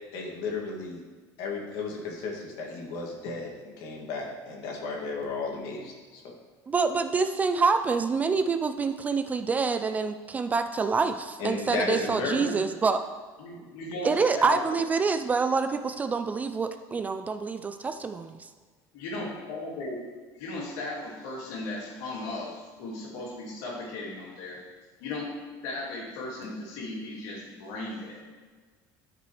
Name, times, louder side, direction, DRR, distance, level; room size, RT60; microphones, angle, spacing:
voice 1, 0.1-1.0 1.4-6.3 11.4-12.6, left 4 dB, 65° left, -1 dB, 2.2 m, -34 dB
voice 2, 6.7-13.0 14.0-18.4, right 4 dB, 15° right, 9 dB, 0.3 m, -26 dB
voice 3, 12.1-12.6 13.4-14.7 18.9-20.0 20.4-24.6 25.0-28.2, left 2 dB, 85° left, -3 dB, 2.6 m, -36 dB
12.5 x 6.0 x 3.2 m, 1.5 s
cardioid pair, 165°, 9 cm